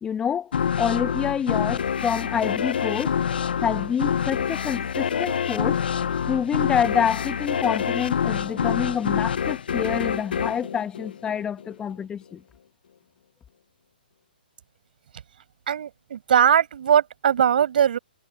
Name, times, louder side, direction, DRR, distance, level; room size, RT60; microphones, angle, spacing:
voice 1, 0.0-3.1 3.6-5.8 6.3-12.4, left 8 dB, 15° left, 1.8 m, -27 dB
sound 1, 0.5-11.7, left 7 dB, 70° left, 0.9 m, -26 dB
voice 2, 15.7-18.0, right 9 dB, 60° right, 7.0 m, -20 dB
hypercardioid pair, 140°, 5 cm